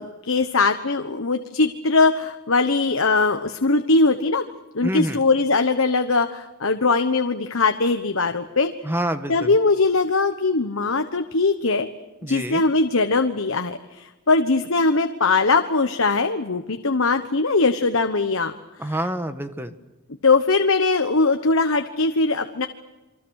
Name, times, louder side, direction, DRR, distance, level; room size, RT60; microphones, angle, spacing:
voice 1, 0.0-4.4 4.7-8.7 9.3-11.9 12.2-18.5 20.2-22.7, left 3 dB, 65° left, 7 dB, 1.2 m, -21 dB
voice 2, 4.8-5.2 8.8-9.6 12.2-12.6 18.8-19.7, right 1 dB, 10° right, 9 dB, 1.4 m, -27 dB
28.5 x 24.5 x 6.5 m, 1.1 s
head